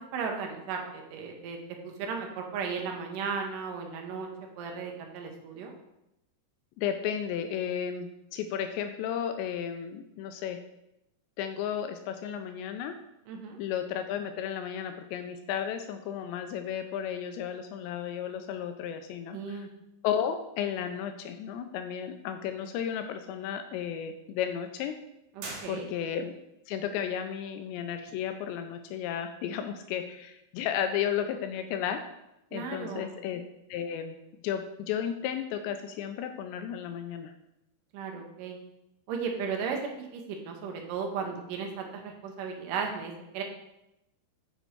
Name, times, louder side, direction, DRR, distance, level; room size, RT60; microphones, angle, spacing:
voice 1, 0.0-1.6 1.8-4.3 4.6-5.7 13.3-13.6 19.3-19.7 25.4-25.9 32.5-33.1 37.9-38.6 39.1-43.4, right 5 dB, 90° right, 2 dB, 1.8 m, -35 dB
voice 2, 6.8-10.6 11.4-12.9 13.6-19.7 20.0-25.0 25.7-26.3 26.7-32.0 32.5-33.4 33.7-34.2 34.4-37.3, left 9 dB, 80° left, 7 dB, 2.7 m, -33 dB
sound 1, 25.4-26.4, right 3 dB, 60° right, 2.9 m, -43 dB
6.8 x 6.7 x 4.5 m, 0.87 s
omnidirectional pair, 5.2 m